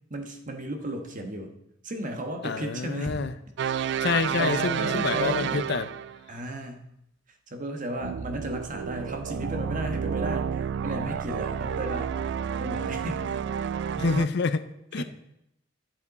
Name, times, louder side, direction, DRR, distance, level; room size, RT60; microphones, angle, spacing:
voice 1, 0.1-1.6 1.8-3.2 3.8-4.1 4.4-5.7 6.3-6.9 7.3-12.2 12.6-13.4 14.9-15.0, right 1 dB, 40° right, 4 dB, 1.2 m, -34 dB
voice 2, 2.4-3.3 4.0-5.9 14.0-15.0, left 4 dB, 60° left, 12 dB, 0.5 m, -27 dB
sound 1, 3.6-6.2 8.0-14.3, right 8 dB, 60° right, 0.3 m, -30 dB
12.0 x 7.5 x 4.1 m, 0.84 s
head